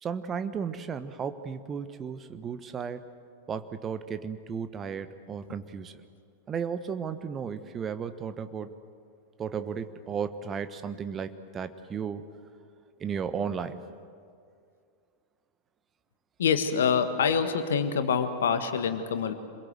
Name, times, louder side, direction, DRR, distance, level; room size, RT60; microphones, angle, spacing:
voice 1, 0.0-3.1 3.5-6.0 6.5-8.8 9.4-12.2 13.0-13.8, right 6 dB, 25° right, 11 dB, 1.3 m, -34 dB
voice 2, 16.4-19.3, left 6 dB, 65° left, 9 dB, 1.6 m, -26 dB
27.0 x 22.0 x 7.8 m, 2.2 s
figure-of-eight pair, 90°, 0 cm